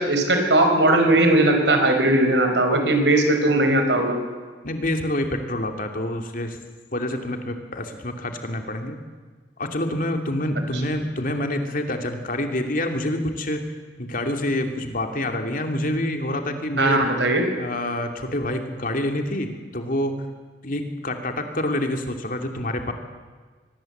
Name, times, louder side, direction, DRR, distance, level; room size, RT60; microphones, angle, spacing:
voice 1, 0.0-4.2 10.6-10.7 16.8-17.5, right 1 dB, 90° right, 5 dB, 4.6 m, -19 dB
voice 2, 4.6-6.6 6.9-9.0 9.6-13.6 14.0-17.1 17.6-20.2 20.6-22.9, left 1 dB, 50° left, 5 dB, 2.7 m, -27 dB
24.0 x 19.5 x 8.0 m, 1.4 s
head